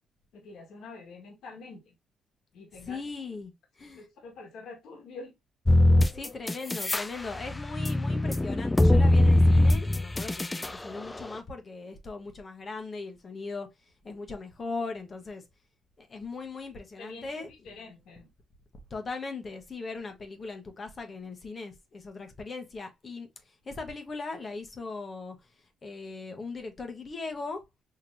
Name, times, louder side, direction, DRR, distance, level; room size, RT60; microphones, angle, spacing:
voice 1, 0.3-1.9 2.5-3.0 4.0-5.3 17.0-18.3, left 3 dB, 75° left, 1.3 m, -46 dB
voice 2, 2.8-3.5 3.8-4.1 6.1-13.7 14.0-15.4 16.0-17.5 18.9-23.3 23.7-25.4 25.8-27.6, left 3 dB, 40° left, 0.9 m, -39 dB
sound 1, 5.7-7.0 7.4-10.7, left 1 dB, 15° left, 0.3 m, -21 dB
4.5 x 2.9 x 2.5 m
cardioid pair, 90°, 0 cm